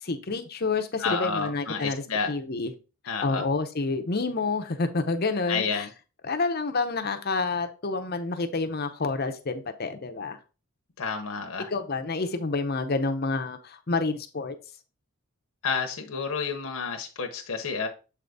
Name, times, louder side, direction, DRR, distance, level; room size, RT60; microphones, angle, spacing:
voice 1, 0.0-2.7 3.2-5.9 6.2-10.4 11.7-14.5, left 3 dB, 45° left, 7 dB, 0.7 m, -28 dB
voice 2, 1.0-2.3 3.1-3.4 5.5-5.9 11.0-11.7 15.6-17.9, left 5 dB, 70° left, 4 dB, 0.9 m, -30 dB
7.4 x 3.9 x 3.5 m, 0.33 s
head